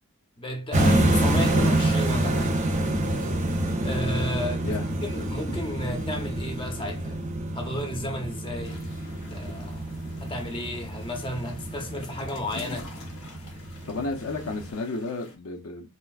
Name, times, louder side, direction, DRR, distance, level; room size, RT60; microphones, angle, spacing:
voice 1, 0.4-2.6 3.8-4.8 5.0-7.2 7.5-8.8 9.3-9.9 10.2-12.9, left 1 dB, 25° left, 0.7 m, -33 dB
sound 1, 0.7-14.7, right 1 dB, 35° right, 0.6 m, -27 dB
sound 2, 8.6-15.4, left 3 dB, 90° left, 1.1 m, -46 dB
voice 2, 13.9-15.9, left 3 dB, 70° left, 0.6 m, -32 dB
4.2 x 2.4 x 2.3 m
head